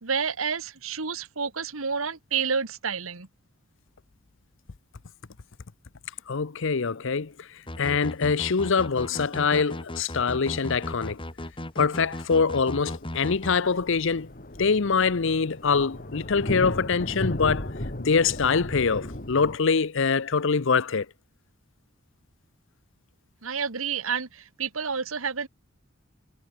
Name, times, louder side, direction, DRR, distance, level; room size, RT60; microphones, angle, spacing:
voice 1, 0.0-3.3 23.4-25.5, right 6 dB, 75° right, 1.6 m, -29 dB
voice 2, 6.3-11.2 11.8-14.3 14.6-17.7 18.0-21.1, left 5 dB, 65° left, 0.7 m, -24 dB
sound 1, 7.7-13.6, left 1 dB, 25° left, 3.4 m, -36 dB
sound 2, 12.5-12.6 12.9-19.6, left 1 dB, 45° left, 2.9 m, -35 dB
head